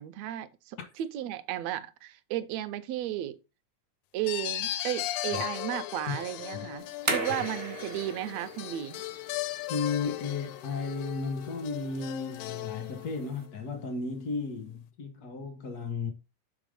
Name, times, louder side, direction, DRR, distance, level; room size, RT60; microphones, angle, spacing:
voice 1, 0.0-3.4 4.1-9.0, right 13 dB, 75° right, 1.7 m, -34 dB
sound 1, 4.3-13.4, left 15 dB, 85° left, 1.9 m, -37 dB
sound 2, 6.8-13.4, right 2 dB, 40° right, 0.6 m, -38 dB
voice 2, 9.7-16.1, left 4 dB, 65° left, 0.9 m, -34 dB
6.9 x 4.1 x 5.2 m
omnidirectional pair, 3.4 m